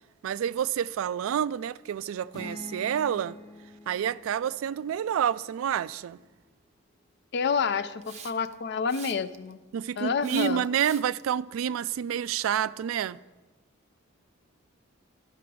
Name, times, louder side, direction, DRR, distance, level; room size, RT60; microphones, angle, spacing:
voice 1, 0.2-3.4 3.9-6.2 9.7-13.2, right 9 dB, 90° right, 0.3 m, -28 dB
sound 1, 2.3-6.1, left 2 dB, 20° left, 0.9 m, -46 dB
voice 2, 7.3-9.6 10.0-10.6, left 6 dB, 60° left, 0.4 m, -28 dB
Hiss, 8.0-8.5 8.9-9.5 10.2-11.2, right 7 dB, 35° right, 0.5 m, -44 dB
13.0 x 5.9 x 4.7 m
head